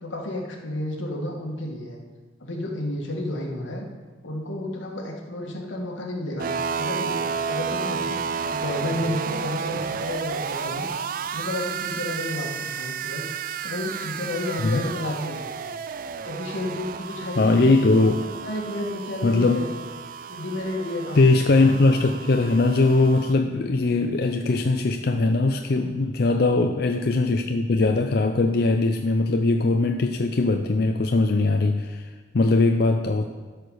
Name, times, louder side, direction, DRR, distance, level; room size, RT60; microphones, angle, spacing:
voice 1, 0.0-2.0 2.4-3.8 4.2-6.5 6.8-8.2 8.5-10.9 11.3-13.3 13.6-15.7 16.2-17.6 18.1-19.7 20.3-21.5 26.5-26.6, left 1 dB, 85° left, 1 dB, 1.7 m, -31 dB
sound 1, 6.4-23.3, right 6 dB, 45° right, 0.4 m, -32 dB
voice 2, 17.4-18.3 19.2-19.7 21.1-33.2, left 3 dB, 55° left, 4 dB, 0.5 m, -20 dB
12.5 x 4.9 x 6.3 m, 1.4 s
head